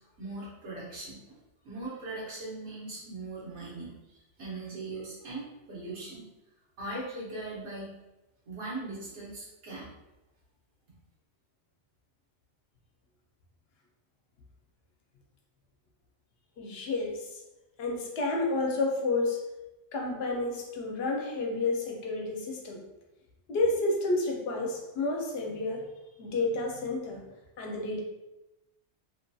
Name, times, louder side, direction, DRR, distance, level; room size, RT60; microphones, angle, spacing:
voice 1, 0.0-1.4 1.6-6.3 6.8-7.9 8.5-9.9, right 2 dB, 90° right, -6 dB, 1.2 m, -40 dB
voice 2, 16.6-17.4 17.8-19.4 19.9-22.8 23.5-25.9 26.2-27.2 27.6-28.0, left 2 dB, 70° left, 0 dB, 0.8 m, -30 dB
2.7 x 2.6 x 2.2 m, 0.98 s
omnidirectional pair, 1.2 m